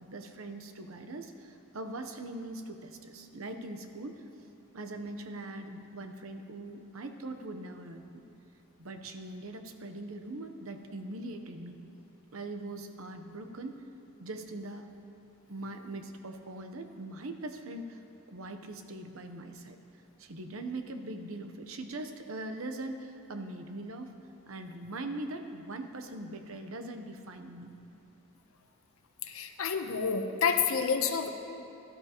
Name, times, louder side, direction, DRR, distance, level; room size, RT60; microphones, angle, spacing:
voice 1, 0.0-4.2 4.7-8.2 8.8-11.8 12.3-13.8 14.2-14.9 15.5-19.8 20.2-24.2 24.5-27.7, right 2 dB, 70° right, 7 dB, 0.8 m, -41 dB
voice 2, 29.3-31.3, left 6 dB, 75° left, 6 dB, 0.8 m, -29 dB
17.5 x 12.0 x 2.9 m, 2.7 s
head